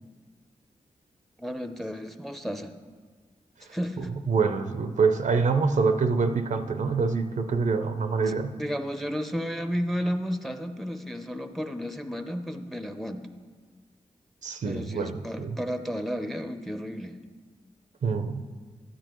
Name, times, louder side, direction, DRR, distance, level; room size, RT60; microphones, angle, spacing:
voice 1, 1.4-2.7 3.7-4.1 8.3-13.3 14.6-17.2, equal, ahead, 7 dB, 0.6 m, -33 dB
voice 2, 4.3-8.5 14.4-15.6 18.0-18.5, right 4 dB, 70° right, 8 dB, 0.6 m, -25 dB
13.0 x 10.0 x 3.0 m, 1.5 s
wide cardioid pair, 85°, 13 cm